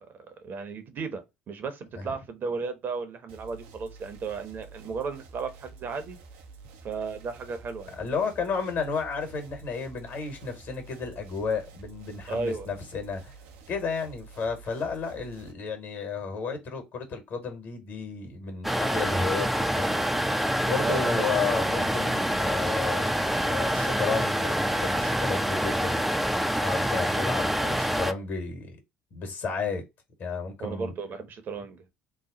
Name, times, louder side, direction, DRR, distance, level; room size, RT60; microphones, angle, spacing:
voice 1, 0.0-6.2 6.8-8.0 12.3-12.7 20.8-21.6 30.6-31.8, right 4 dB, 45° right, 0.9 m, -35 dB
sound 1, 3.3-15.5, right 4 dB, 65° right, 0.6 m, -49 dB
voice 2, 8.0-13.4 13.7-20.0 20.6-23.1 23.4-26.0 26.6-28.8 29.1-29.8 30.2-30.9, left 5 dB, 55° left, 1.4 m, -32 dB
sound 2, 18.6-28.1, equal, ahead, 0.5 m, -26 dB
3.1 x 2.1 x 3.8 m
hypercardioid pair, 55°, 4 cm